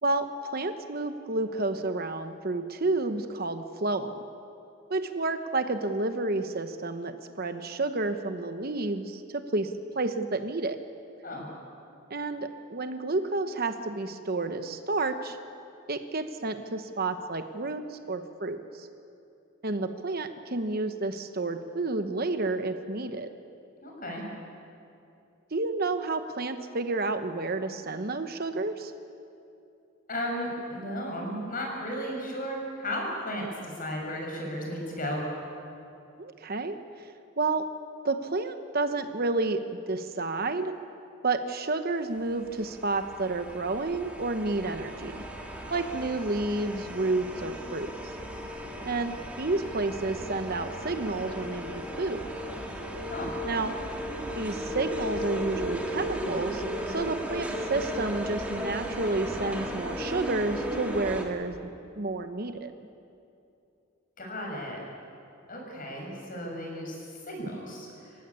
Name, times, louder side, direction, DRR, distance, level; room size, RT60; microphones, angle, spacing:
voice 1, 0.5-4.2 4.9-10.8 12.1-15.4 15.9-18.9 19.6-23.3 25.5-28.9 36.2-37.1 37.4-37.7 38.0-39.6 39.9-40.7 41.2-45.2 45.7-47.9 48.8-52.3 53.5-53.7 54.4-62.7, right 2 dB, 45° right, 8 dB, 1.0 m, -30 dB
voice 2, 23.8-24.2 30.1-35.2 53.1-53.3 64.2-64.8 65.5-67.0 67.3-67.9, equal, 40° left, 0 dB, 6.5 m, -34 dB
sound 1, 42.3-61.2, equal, 5° right, 2.3 m, -36 dB
26.5 x 15.5 x 9.8 m, 2.7 s
head